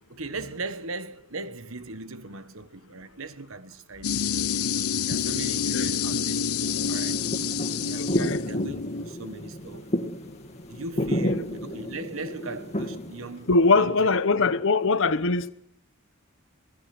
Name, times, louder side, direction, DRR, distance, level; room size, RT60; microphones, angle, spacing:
voice 1, 0.1-4.1 5.1-6.4 6.9-7.3 7.8-9.9 10.7-13.9, right 3 dB, 65° right, 1.4 m, -38 dB
sound 1, 4.0-9.0, left 6 dB, 85° left, 0.8 m, -28 dB
sound 2, 6.6-13.7, equal, 30° left, 2.4 m, -31 dB
voice 2, 8.0-8.4 11.0-11.4 13.5-15.5, left 3 dB, 60° left, 1.0 m, -22 dB
24.0 x 19.5 x 6.0 m
head